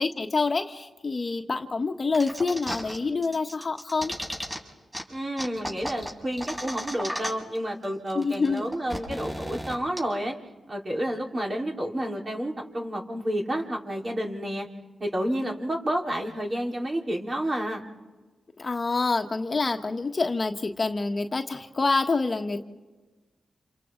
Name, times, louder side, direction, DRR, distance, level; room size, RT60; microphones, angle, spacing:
voice 1, 0.0-4.1 8.1-8.6 18.6-22.6, left 3 dB, 40° left, 5 dB, 1.3 m, -27 dB
sound 1, 2.1-3.0 3.2-4.6 4.9-5.0 5.4-7.6 7.8-7.9 8.1-10.0, equal, 20° right, 5.7 m, -34 dB
voice 2, 5.1-10.4 10.7-14.7 15.0-17.8 22.5-22.6, equal, 35° right, 0 dB, 4.2 m, -30 dB
28.0 x 27.5 x 3.9 m, 1.2 s
cardioid pair, 55°, 0 cm